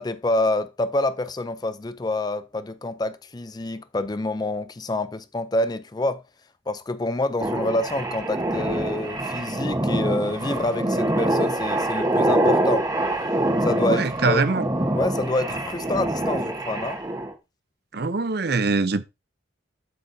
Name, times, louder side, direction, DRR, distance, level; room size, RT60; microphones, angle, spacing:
voice 1, 0.0-6.2 6.7-12.9 13.6-14.4 14.9-17.0, left 2 dB, 20° left, 0.4 m, -27 dB
sound 1, 7.4-17.3, right 1 dB, 20° right, 1.2 m, -25 dB
voice 2, 13.9-14.7 17.9-19.0, right 3 dB, 55° right, 0.6 m, -23 dB
7.6 x 7.3 x 2.7 m
head